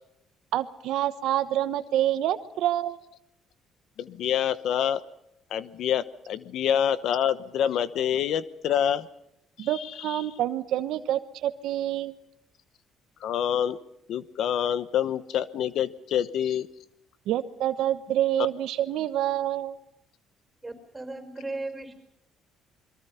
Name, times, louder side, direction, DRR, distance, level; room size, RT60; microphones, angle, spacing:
voice 1, 0.5-3.0 9.6-12.1 17.3-19.8, right 12 dB, 75° right, 10 dB, 1.1 m, -27 dB
voice 2, 4.0-5.0 5.5-9.1 9.6-10.2 13.2-13.8 14.1-16.7, left 9 dB, 65° left, 15 dB, 0.9 m, -27 dB
voice 3, 20.6-22.0, right 2 dB, 15° right, 7 dB, 5.2 m, -36 dB
29.0 x 22.5 x 5.7 m, 0.81 s
cardioid pair, 115°, 0 cm